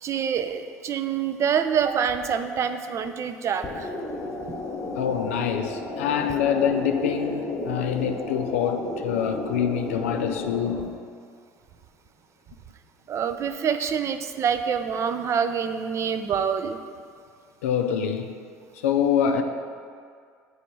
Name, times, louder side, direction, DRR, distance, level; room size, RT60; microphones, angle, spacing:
voice 1, 0.0-3.9 13.1-16.8, right 7 dB, 40° right, 9 dB, 0.4 m, -26 dB
sound 1, 3.6-10.8, left 2 dB, 30° left, 1.1 m, -33 dB
voice 2, 5.0-11.0 17.6-18.4 18.7-19.4, left 8 dB, 85° left, 6 dB, 0.3 m, -25 dB
7.0 x 3.1 x 4.5 m, 2.1 s
hypercardioid pair, 75°, 7 cm